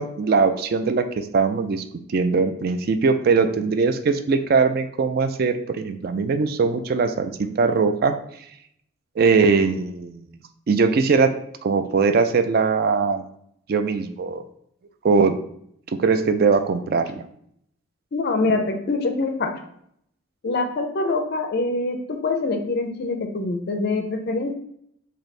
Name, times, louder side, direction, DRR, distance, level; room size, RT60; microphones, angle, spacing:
voice 1, 0.0-8.1 9.2-10.4 10.7-11.3 11.6-13.2 13.7-14.4 15.0-15.3 16.0-17.2, right 4 dB, 45° right, 8 dB, 0.3 m, -21 dB
voice 2, 18.1-19.6 20.4-24.6, left 3 dB, 50° left, 6 dB, 0.4 m, -24 dB
3.2 x 2.7 x 4.1 m, 0.70 s
head